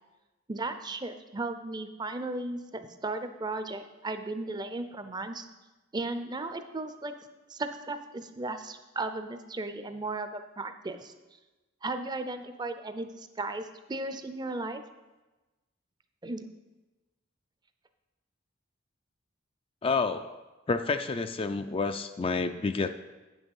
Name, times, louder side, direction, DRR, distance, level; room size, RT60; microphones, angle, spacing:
voice 1, 0.5-5.5 5.9-7.1 7.5-11.1 11.8-14.8 16.2-16.5, right 2 dB, 20° right, 9 dB, 0.5 m, -35 dB
voice 2, 19.8-20.4 20.7-22.9, left 4 dB, 25° left, 8 dB, 0.3 m, -29 dB
8.3 x 6.3 x 7.1 m, 1.1 s
head